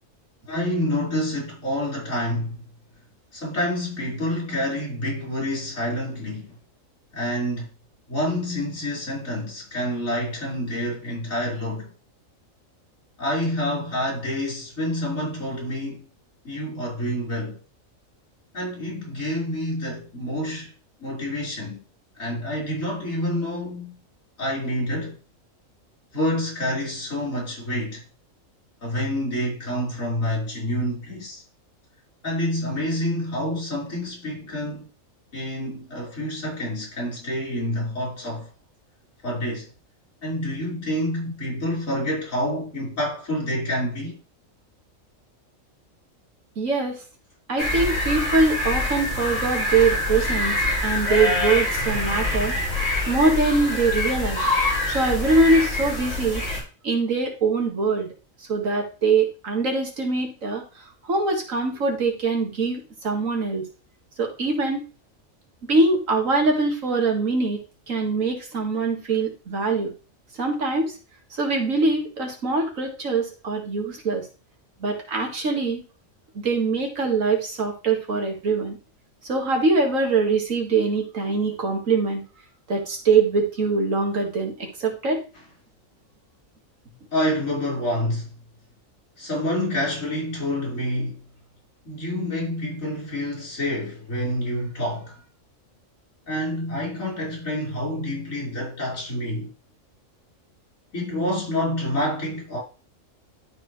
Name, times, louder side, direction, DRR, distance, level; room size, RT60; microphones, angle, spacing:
voice 1, 0.5-2.6 3.3-6.6 7.1-7.7 8.1-11.9 13.2-16.0 16.4-17.6 18.5-20.7 21.0-21.8 22.2-24.0 24.4-25.2 26.1-28.0 28.8-31.4 32.2-34.9 35.3-38.5 39.2-39.7 40.2-44.2 87.1-88.3 89.2-91.2 91.8-95.2 96.3-99.5 100.9-102.6, left 1 dB, 80° left, 5.1 m, -28 dB
voice 2, 46.6-47.0 47.5-52.5 53.1-54.5 54.9-56.4 56.8-58.1 58.5-60.6 61.0-63.6 64.2-64.8 65.7-67.6 67.9-69.9 70.4-70.9 71.3-74.2 74.8-75.8 76.4-78.8 79.2-82.2 82.7-85.2, right 3 dB, 75° right, 2.2 m, -23 dB
sound 1, 47.6-56.6, left 1 dB, 55° left, 2.9 m, -25 dB
12.5 x 4.4 x 3.2 m
omnidirectional pair, 1.4 m